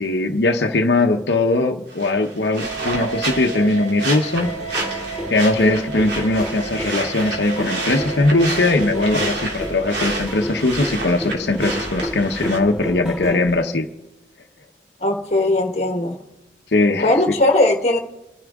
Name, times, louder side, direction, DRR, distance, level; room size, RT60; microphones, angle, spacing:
voice 1, 0.0-4.5 5.3-13.9 16.7-17.2, left 2 dB, 70° left, 3 dB, 0.9 m, -20 dB
sound 1, 1.9-12.6, right 2 dB, 80° right, 3.3 m, -30 dB
sound 2, 2.6-10.3, right 5 dB, 40° right, 1.5 m, -33 dB
sound 3, 4.4-13.5, equal, 5° right, 3.8 m, -31 dB
voice 2, 15.0-16.2 17.0-18.0, left 2 dB, 35° left, 4 dB, 1.4 m, -18 dB
29.5 x 10.5 x 3.6 m, 1.0 s
head